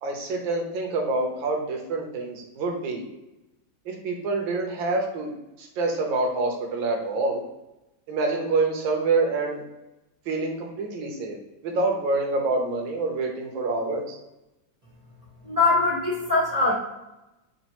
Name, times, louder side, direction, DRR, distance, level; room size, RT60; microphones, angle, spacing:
voice 1, 0.0-3.0 3.9-5.3 5.6-7.4 8.1-9.6 10.3-11.4 11.6-14.2, right 3 dB, 75° right, 0 dB, 1.6 m, -26 dB
voice 2, 15.4-16.7, left 3 dB, 30° right, -7 dB, 0.7 m, -22 dB
5.2 x 2.5 x 2.9 m, 0.96 s
omnidirectional pair, 2.2 m